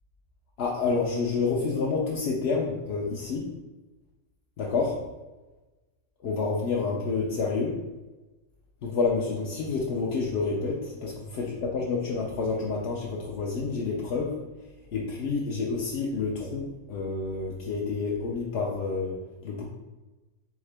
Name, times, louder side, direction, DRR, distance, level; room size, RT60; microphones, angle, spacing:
voice 1, 0.6-3.5 4.6-4.9 6.2-7.7 8.8-11.1 11.7-14.3 14.9-19.2 19.4-19.7, left 4 dB, 60° left, -3 dB, 0.7 m, -28 dB
3.7 x 3.6 x 3.3 m, 1.1 s
omnidirectional pair, 1.5 m